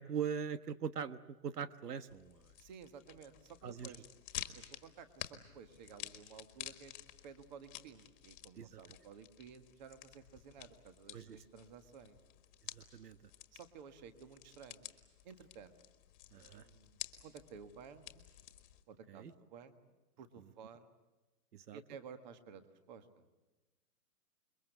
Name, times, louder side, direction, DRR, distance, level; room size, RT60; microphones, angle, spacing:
voice 1, 0.0-2.5 3.6-3.9 8.5-8.8 11.1-11.4 12.6-13.2 16.3-16.7 19.1-19.3 21.5-21.8, right 7 dB, 85° right, 13 dB, 1.3 m, -42 dB
sound 1, 2.1-18.8, left 13 dB, 30° left, 1.8 m, -51 dB
voice 2, 2.6-4.1 4.3-6.9 7.2-12.2 13.5-14.9 15.2-15.8 16.3-18.3 18.9-20.9 21.7-23.2, right 6 dB, 30° right, 10 dB, 1.5 m, -54 dB
27.5 x 22.5 x 8.0 m, 1.1 s
hypercardioid pair, 165°, 46 cm